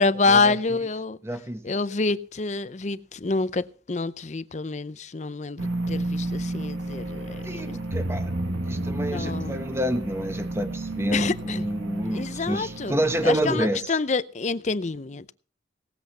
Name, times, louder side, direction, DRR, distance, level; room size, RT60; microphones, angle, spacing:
voice 1, 0.0-1.2 1.6-7.7 9.1-9.6 11.1-11.6 12.0-12.9 13.2-15.3, left 3 dB, 40° left, 0.5 m, -27 dB
voice 2, 1.2-1.8 7.4-8.3 8.6-14.0, equal, 15° right, 1.1 m, -28 dB
sound 1, 5.6-13.6, right 2 dB, 85° right, 1.7 m, -31 dB
18.5 x 8.0 x 5.6 m
head